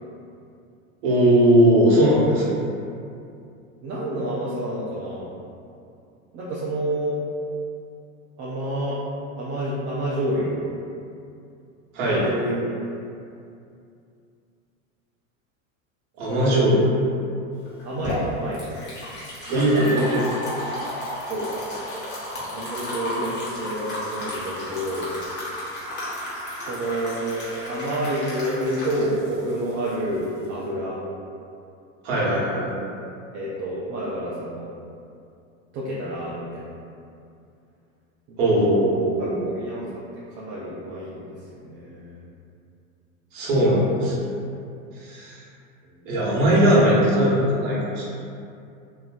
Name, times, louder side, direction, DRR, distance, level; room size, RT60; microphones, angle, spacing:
voice 1, 1.0-2.4 11.9-12.2 16.2-16.8 19.4-20.2 32.0-32.7 38.4-39.5 43.3-44.1 45.0-45.4 46.0-48.0, right 1 dB, 60° right, -7 dB, 1.1 m, -19 dB
voice 2, 3.8-5.3 6.3-7.2 8.4-9.0 9.4-10.6 12.0-12.6 16.3-16.7 17.8-18.6 19.5-20.3 21.3-22.0 22.5-25.1 26.7-31.0 33.3-34.7 35.7-36.7 38.3-38.4 39.2-39.8 40.4-42.2, right 1 dB, 30° right, -8 dB, 0.4 m, -29 dB
sound 1, 17.7-30.6, left 1 dB, 25° left, 1.0 m, -33 dB
3.0 x 2.5 x 2.3 m, 2.5 s
hypercardioid pair, 105°, 41 cm